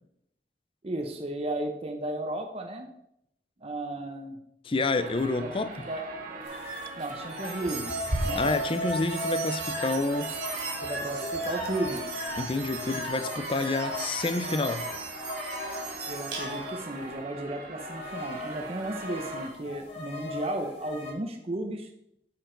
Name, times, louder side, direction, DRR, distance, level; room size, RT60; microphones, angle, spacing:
voice 1, 0.8-2.9 3.6-4.4 5.4-5.5 5.8-6.1 7.0-7.9 8.2-8.4 10.8-12.1 16.1-21.9, right 1 dB, 35° right, 0.8 m, -34 dB
voice 2, 4.7-5.7 8.4-10.5 12.4-14.9, left 3 dB, 30° left, 0.5 m, -29 dB
sound 1, 4.9-19.5, right 3 dB, 50° right, 1.7 m, -42 dB
sound 2, 6.4-17.1 17.8-21.1, equal, 75° left, 3.9 m, -36 dB
sound 3, 7.3-16.8, right 3 dB, 65° right, 2.3 m, -38 dB
8.6 x 7.0 x 3.9 m
head